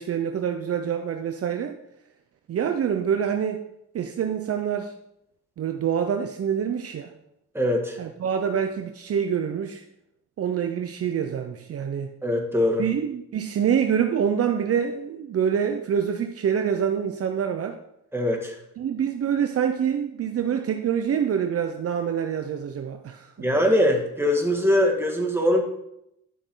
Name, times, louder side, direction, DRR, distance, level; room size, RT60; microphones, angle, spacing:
voice 1, 0.0-1.8 2.5-3.6 3.9-4.9 5.6-7.1 8.0-9.8 10.4-12.1 12.8-17.8 18.8-23.3, right 8 dB, 50° right, 5 dB, 0.8 m, -26 dB
voice 2, 7.5-8.0 12.2-12.8 18.1-18.6 23.4-25.6, left 1 dB, 10° right, 1 dB, 2.1 m, -22 dB
12.0 x 6.3 x 3.9 m, 0.80 s
cardioid pair, 90°, 30 cm